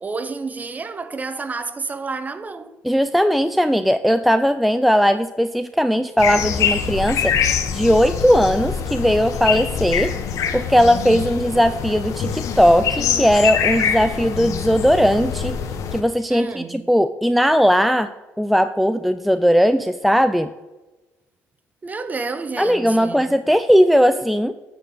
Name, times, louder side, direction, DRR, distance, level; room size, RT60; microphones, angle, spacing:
voice 1, 0.0-2.7 16.3-16.9 21.8-23.4, right 4 dB, 25° right, 0.7 m, -30 dB
voice 2, 2.8-7.3 7.7-10.1 10.5-15.6 15.9-18.1 18.4-20.5 22.6-24.5, equal, ahead, 0.3 m, -18 dB
sound 1, 6.2-16.0, left 7 dB, 65° left, 1.0 m, -24 dB
9.2 x 3.8 x 6.6 m
supercardioid pair, 80°, 6 cm